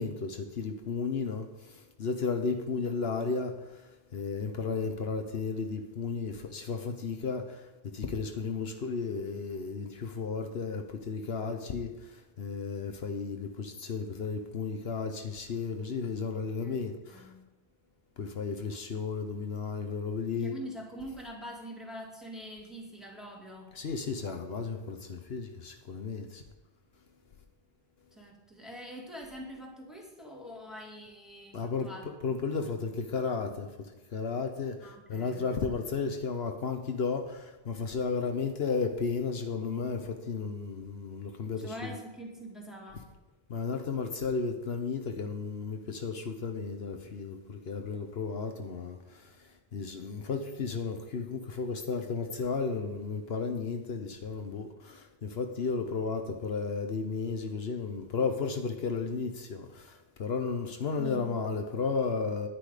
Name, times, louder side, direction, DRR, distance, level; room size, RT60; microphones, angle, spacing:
voice 1, 0.0-1.5 2.0-3.5 4.1-7.4 7.9-11.9 12.4-17.3 18.2-20.5 23.7-26.4 31.5-33.7 34.1-41.9 43.5-49.2 49.7-62.5, left 4 dB, 70° left, 1.1 m, -33 dB
voice 2, 16.4-17.5 20.3-23.7 28.1-32.7 34.8-35.5 41.6-43.1 61.0-61.4, equal, ahead, 2.5 m, -44 dB
10.5 x 10.0 x 5.0 m
omnidirectional pair, 1.1 m